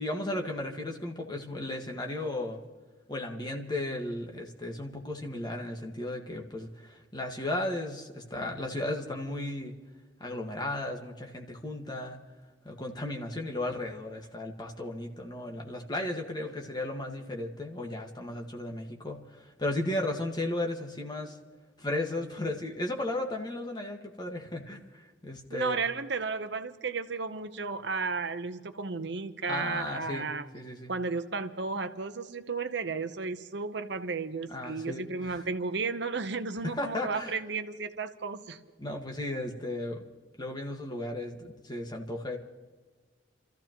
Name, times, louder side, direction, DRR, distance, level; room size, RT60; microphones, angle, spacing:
voice 1, 0.0-2.6 3.1-9.8 10.2-12.2 12.6-21.4 21.8-25.8 29.5-30.3 30.5-30.9 34.5-35.4 36.8-37.4 38.8-40.0 40.4-42.4, left 1 dB, 20° left, 1 dB, 1.6 m, -35 dB
voice 2, 25.5-30.5 30.9-38.6, right 4 dB, 60° right, 9 dB, 0.8 m, -33 dB
28.5 x 14.5 x 3.0 m, 1.4 s
head